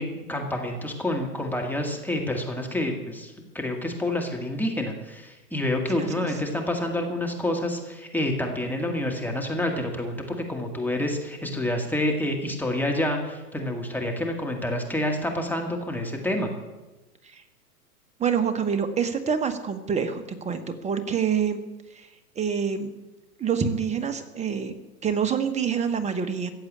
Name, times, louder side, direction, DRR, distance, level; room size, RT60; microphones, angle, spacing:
voice 1, 0.0-16.5, left 1 dB, 5° left, 1 dB, 1.9 m, -28 dB
voice 2, 5.9-6.3 17.3-17.4 18.2-21.6 22.0-22.1 22.4-22.9 23.4-24.7 25.0-26.5, right 7 dB, 15° right, 8 dB, 1.2 m, -26 dB
15.0 x 8.0 x 8.6 m, 1.1 s
hypercardioid pair, 120°, 46 cm